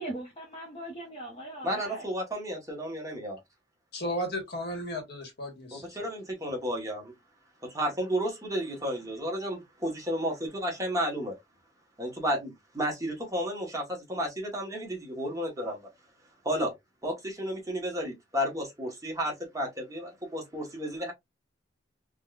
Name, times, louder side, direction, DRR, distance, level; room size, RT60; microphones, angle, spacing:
voice 1, 0.0-2.0, right 1 dB, 30° left, 0.8 m, -40 dB
voice 2, 1.6-3.4 5.9-7.1 7.6-11.3 12.0-15.9 16.4-16.7 17.0-21.1, equal, 20° right, 1.0 m, -32 dB
voice 3, 3.9-6.1, equal, 60° left, 1.2 m, -35 dB
3.5 x 2.2 x 2.3 m
head